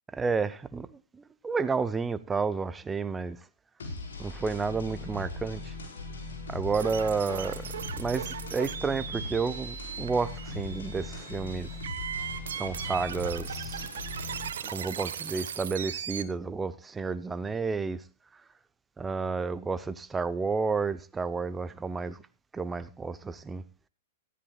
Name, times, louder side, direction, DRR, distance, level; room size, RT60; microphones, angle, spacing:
voice 1, 0.1-3.4 4.2-5.7 6.5-7.6 7.9-11.7 12.5-13.9 14.6-18.0 19.0-22.2 22.5-23.6, right 4 dB, 15° right, 0.7 m, -31 dB
sound 1, 3.8-14.5, left 2 dB, 70° left, 4.6 m, -39 dB
sound 2, 6.7-16.2, right 8 dB, 65° right, 1.3 m, -38 dB
18.5 x 14.0 x 2.3 m
figure-of-eight pair, 105°, 0 cm